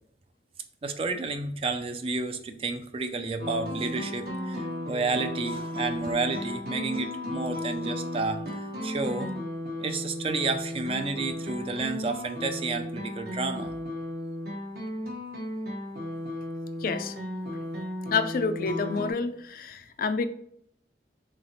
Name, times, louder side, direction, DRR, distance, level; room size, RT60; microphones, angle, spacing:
voice 1, 0.8-8.4 8.8-9.3 9.8-13.7, right 3 dB, 30° right, 6 dB, 0.4 m, -31 dB
sound 1, 3.4-19.1, left 1 dB, 60° right, 0.9 m, -35 dB
voice 2, 16.8-17.2 18.1-20.3, left 4 dB, 55° left, 10 dB, 0.4 m, -28 dB
3.8 x 3.3 x 4.0 m, 0.68 s
head